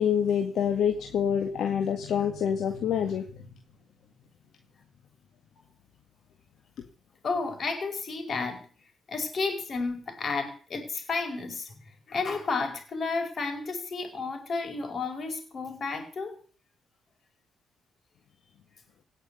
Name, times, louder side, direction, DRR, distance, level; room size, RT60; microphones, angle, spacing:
voice 1, 0.0-3.5, left 8 dB, 70° left, 4 dB, 1.9 m, -26 dB
voice 2, 7.2-8.7 9.1-11.8 12.1-16.4, left 4 dB, 45° left, 6 dB, 5.1 m, -32 dB
17.5 x 6.6 x 9.3 m, 0.41 s
cardioid pair, 90°, 0 cm